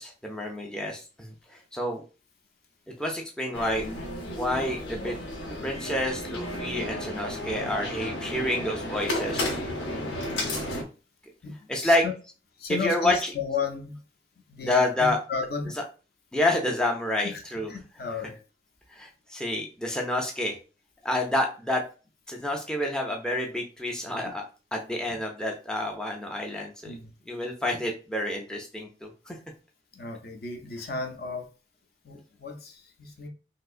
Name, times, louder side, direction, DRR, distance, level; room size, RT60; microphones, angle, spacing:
voice 1, 0.0-2.0 3.0-3.9 4.3-5.2 5.5-9.6 11.7-12.0 12.8-13.3 14.6-15.2 16.3-17.7 18.9-20.6 21.0-21.8 22.3-24.4 24.7-26.9 27.3-29.4, left 1 dB, 5° left, 0 dB, 0.4 m, -28 dB
sound 1, 3.5-10.8, left 1 dB, 90° left, 0.8 m, -33 dB
voice 2, 11.4-12.1 12.6-14.0 14.5-15.7 17.2-17.4 17.7-18.3 26.8-27.1 29.9-31.5 32.0-33.3, left 5 dB, 55° left, 3 dB, 0.6 m, -34 dB
3.5 x 2.7 x 2.4 m, 0.35 s
head